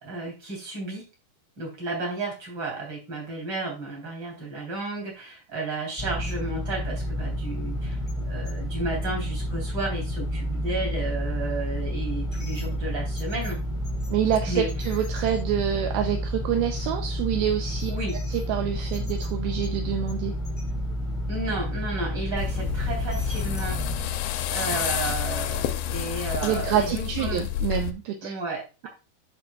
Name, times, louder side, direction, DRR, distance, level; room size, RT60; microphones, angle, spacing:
voice 1, 0.0-1.0 1.6-13.6 14.5-14.7 17.9-18.2 21.3-23.8 24.5-27.4 28.2-28.9, right 2 dB, 25° right, -1 dB, 3.6 m, -33 dB
sound 1, 6.0-24.0, equal, ahead, 1.2 m, -30 dB
voice 2, 14.1-17.9 18.3-20.4 26.4-28.3, right 9 dB, 80° right, 5 dB, 2.3 m, -27 dB
sound 2, 22.4-27.9, left 11 dB, 80° left, 2.2 m, -29 dB
9.5 x 6.2 x 2.3 m, 0.30 s
omnidirectional pair, 4.8 m